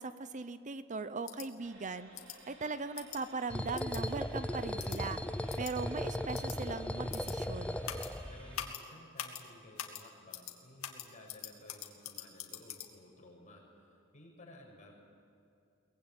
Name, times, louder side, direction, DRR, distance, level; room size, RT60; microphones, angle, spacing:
voice 1, 0.0-2.1 2.5-5.2 5.6-7.8, right 4 dB, 35° right, 13 dB, 0.7 m, -39 dB
sound 1, 1.3-1.5 2.1-2.4 3.0-3.2 3.8-4.0 4.8-5.0 5.5-5.7 6.3-6.6 7.1-7.3 7.8-8.1 8.5-8.8 9.2-9.4 9.8-10.0 10.3-10.5 10.8-12.9, left 10 dB, 90° left, 2.3 m, -43 dB
sound 2, 1.6-8.6, right 1 dB, 85° right, 6.2 m, -55 dB
sound 3, 3.5-8.7, left 1 dB, 5° left, 0.5 m, -37 dB
voice 2, 8.3-14.9, left 1 dB, 35° left, -1 dB, 6.5 m, -56 dB
23.0 x 20.0 x 8.9 m, 2.5 s
head